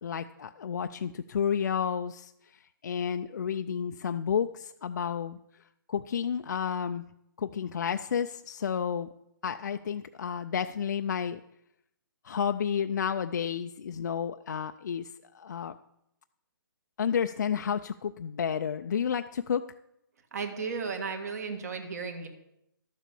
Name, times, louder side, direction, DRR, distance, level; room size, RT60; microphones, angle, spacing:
voice 1, 0.0-7.0 7.4-9.1 9.4-11.4 12.2-15.8 17.0-19.7, left 7 dB, 55° left, 7 dB, 0.4 m, -31 dB
voice 2, 20.3-22.3, right 5 dB, 45° right, 6 dB, 1.6 m, -34 dB
12.0 x 7.4 x 6.9 m, 0.80 s
hypercardioid pair, 170°, 12 cm